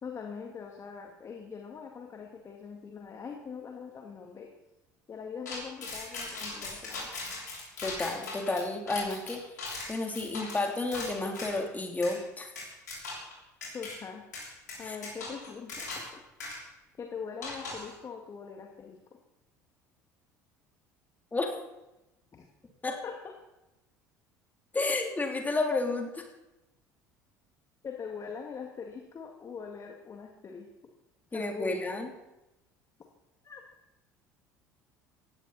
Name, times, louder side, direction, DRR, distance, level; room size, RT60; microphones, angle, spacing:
voice 1, 0.0-4.5 5.1-7.1 13.7-14.3 14.8-16.2 17.0-19.0 22.3-22.5 22.9-23.3 27.8-30.7 31.3-31.8 33.4-33.6, left 6 dB, 35° left, 2 dB, 2.4 m, -42 dB
sound 1, 5.5-11.6 12.0-12.2 12.6-13.3 13.6-13.9 14.3-16.1 16.4-16.6 17.4-17.9, left 3 dB, 80° left, 6.6 m, -39 dB
voice 2, 7.8-9.4 9.9-12.5 14.8-15.0 21.3-21.5 22.8-22.9 24.7-26.2 31.3-32.1, left 2 dB, 20° left, 2 dB, 3.6 m, -31 dB
19.0 x 16.0 x 4.4 m, 0.96 s
figure-of-eight pair, 60°, 9 cm